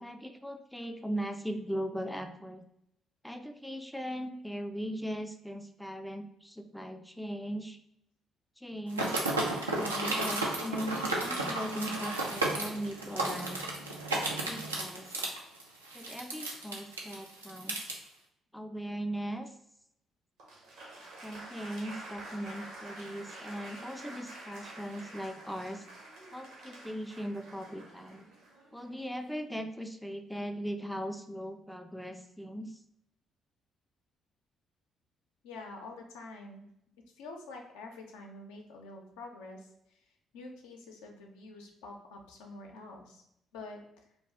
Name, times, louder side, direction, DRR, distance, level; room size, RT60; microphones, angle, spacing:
voice 1, 0.0-2.6 3.2-7.8 8.6-9.3 9.7-13.6 14.1-15.1 15.9-17.9 18.5-19.5 21.2-25.9 26.3-28.3 28.7-32.8, equal, ahead, 7 dB, 0.3 m, -39 dB
sound 1, 8.9-17.9, right 2 dB, 85° right, 0.3 m, -33 dB
Applause, 20.4-29.3, right 2 dB, 65° right, 0.7 m, -48 dB
voice 2, 35.4-36.7 37.2-40.0 40.3-43.2 43.5-43.8, left 2 dB, 70° left, 1 dB, 0.5 m, -47 dB
2.5 x 2.3 x 3.3 m, 0.78 s
figure-of-eight pair, 45°, 0 cm